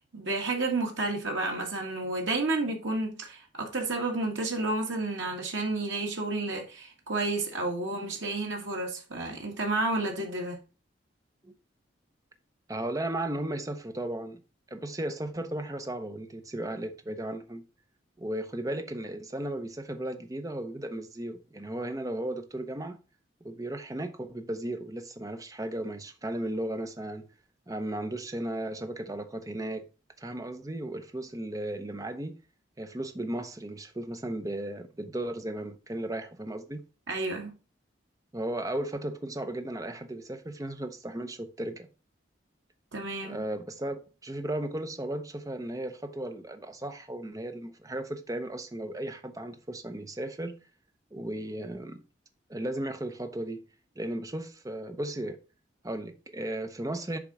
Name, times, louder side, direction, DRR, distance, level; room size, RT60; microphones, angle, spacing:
voice 1, 0.1-10.6 37.1-37.5 42.9-43.4, right 2 dB, 85° right, 1.6 m, -31 dB
voice 2, 12.7-14.4 14.7-17.6 18.2-23.0 23.4-27.3 27.7-29.9 30.2-32.4 32.8-36.8 38.3-41.9 43.2-50.6 51.1-52.0 52.5-53.6 54.0-55.4 55.8-57.2, right 1 dB, 20° right, 0.6 m, -35 dB
6.8 x 3.7 x 4.7 m
head